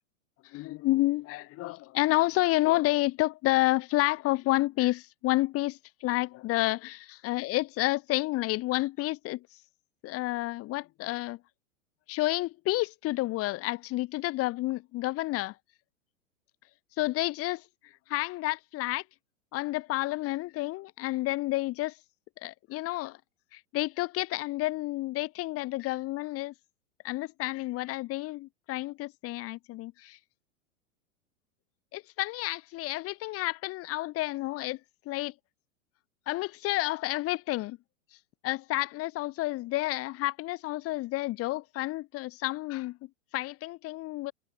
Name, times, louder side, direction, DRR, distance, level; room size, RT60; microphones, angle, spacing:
voice 1, 0.4-6.8 7.2-9.5 10.0-11.4 12.1-15.5 17.0-17.6 18.1-19.0 19.5-22.0 22.4-23.2 23.5-26.5 27.0-30.2 31.9-34.8 35.0-35.3 36.3-37.8 38.4-44.3, left 18 dB, 35° left, 4.7 m, -30 dB
figure-of-eight pair, 100°, 40 cm